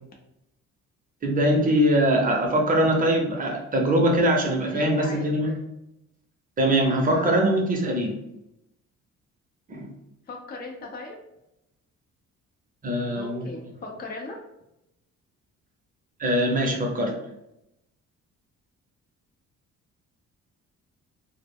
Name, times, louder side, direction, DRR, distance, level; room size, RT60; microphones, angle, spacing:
voice 1, 1.2-5.5 6.6-8.2 9.7-9.9 12.8-13.5 16.2-17.2, right 1 dB, 30° right, 1 dB, 0.7 m, -22 dB
voice 2, 4.7-5.6 7.0-7.4 10.3-11.2 13.1-14.4, left 3 dB, 30° left, 0 dB, 0.5 m, -38 dB
2.1 x 2.0 x 3.4 m, 0.86 s
cardioid pair, 90°, 30 cm